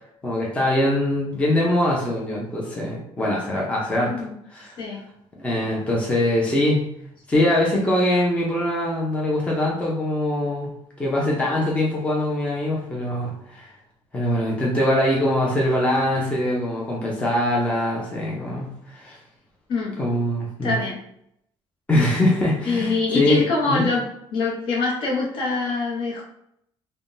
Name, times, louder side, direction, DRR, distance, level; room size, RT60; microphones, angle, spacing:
voice 1, 0.2-4.8 5.4-6.9 7.3-10.7 11.0-13.7 14.1-19.2 20.0-20.8 21.9-23.8, left 1 dB, 10° left, -4 dB, 0.6 m, -23 dB
voice 2, 20.6-21.0 22.7-26.2, left 3 dB, 55° left, -2 dB, 0.8 m, -24 dB
3.4 x 2.2 x 2.6 m, 0.74 s
cardioid pair, 140°, 10 cm